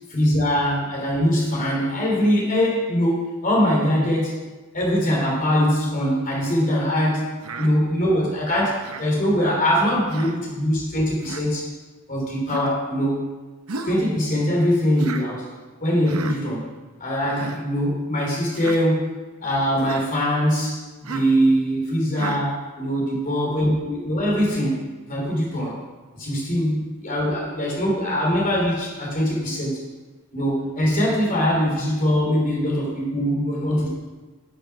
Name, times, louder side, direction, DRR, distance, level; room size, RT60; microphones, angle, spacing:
voice 1, 0.1-4.3 4.7-11.7 12.1-13.3 13.8-15.5 15.8-16.7 17.0-19.1 19.4-25.8 26.1-29.8 30.3-33.9, equal, 40° left, -3 dB, 3.4 m, -22 dB
Human voice, 7.4-7.7 8.8-9.1 10.1-10.4 11.2-11.4 12.5-12.7 13.7-14.0 15.0-15.3 16.1-16.4 17.2-17.6 18.5-18.8 19.8-20.1 21.0-21.4 22.2-22.4, right 3 dB, 75° right, 0.9 m, -33 dB
9.8 x 6.5 x 6.0 m, 1.3 s
head